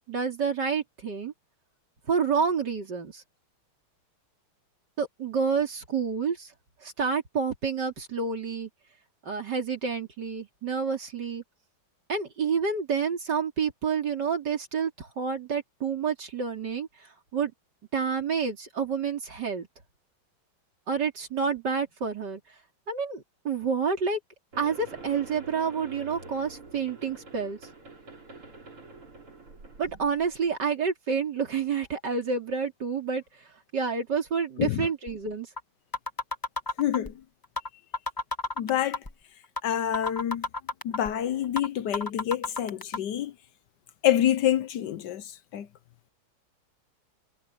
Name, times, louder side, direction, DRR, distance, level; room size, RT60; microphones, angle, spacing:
voice 1, 0.1-1.3 2.1-3.2 5.0-6.5 6.8-8.7 9.2-11.4 12.1-16.9 17.3-17.5 17.9-19.7 20.9-22.4 22.9-24.2 24.6-27.6 29.8-33.2 33.7-35.5, right 6 dB, 55° right, 3.6 m, -29 dB
sound 1, 24.5-30.5, right 3 dB, 85° right, 6.2 m, -46 dB
sound 2, 35.1-35.2 35.6-35.7 35.9-37.1 37.6-37.7 37.9-39.1 39.6-39.7 39.9-41.1 41.6-41.7 41.9-43.0, left 2 dB, 15° left, 0.7 m, -30 dB
voice 2, 36.8-37.1 38.6-39.0 39.6-40.5 40.8-43.3 44.0-45.7, left 11 dB, 65° left, 1.2 m, -27 dB
omnidirectional pair, 2.3 m